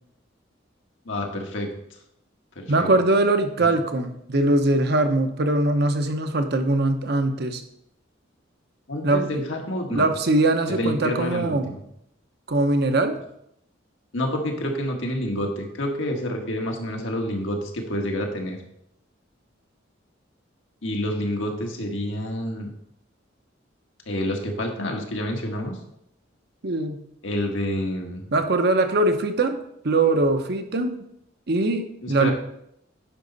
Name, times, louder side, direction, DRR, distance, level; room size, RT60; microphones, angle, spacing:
voice 1, 1.0-1.7 2.5-2.9 3.6-3.7 8.9-10.1 10.7-11.8 14.1-18.6 20.8-22.7 24.1-25.8 27.2-28.2 32.0-32.3, left 1 dB, 80° left, 2 dB, 1.6 m, -28 dB
voice 2, 2.7-7.6 9.0-9.4 9.9-11.7 12.5-13.1 26.6-27.0 28.3-31.0 31.5-32.3, right 2 dB, 55° right, 7 dB, 0.9 m, -22 dB
10.0 x 5.4 x 4.0 m, 0.75 s
head